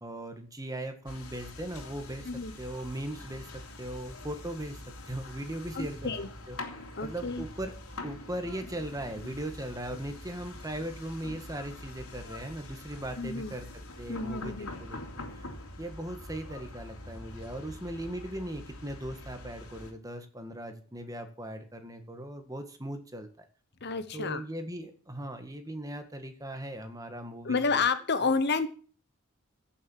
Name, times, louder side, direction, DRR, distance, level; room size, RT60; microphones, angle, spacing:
voice 1, 0.0-6.1 6.5-7.7 8.0-13.7 14.0-15.0 15.3-15.5 15.8-23.3 24.1-27.8 28.2-28.3, right 1 dB, 15° right, 7 dB, 1.9 m, -39 dB
sound 1, 1.1-19.9, left 2 dB, 80° left, 3.2 m, -44 dB
voice 2, 5.7-6.3 7.0-7.4 13.2-13.5 14.1-14.7 23.8-24.4 27.4-28.7, left 4 dB, 50° left, 12 dB, 1.0 m, -30 dB
15.5 x 7.2 x 7.4 m, 0.41 s
head